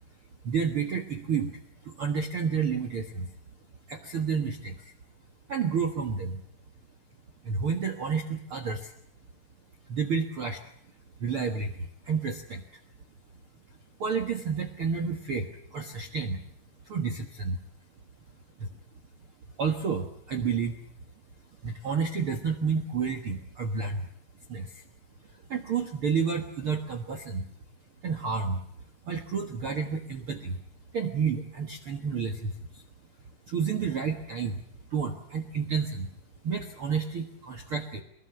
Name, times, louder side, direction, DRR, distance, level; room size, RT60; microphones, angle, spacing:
voice 1, 0.4-3.3 3.9-4.9 5.5-6.4 7.4-8.9 9.9-10.6 11.2-12.6 14.0-16.4 16.8-17.6 18.6-18.7 19.6-20.8 21.6-24.1 24.5-24.8 25.5-27.4 28.0-28.6 29.1-30.6 30.9-32.8 33.5-34.6 34.9-36.1 36.4-38.0, right 5 dB, 75° right, 5 dB, 1.2 m, -30 dB
24.0 x 21.0 x 8.1 m, 0.68 s
omnidirectional pair, 4.9 m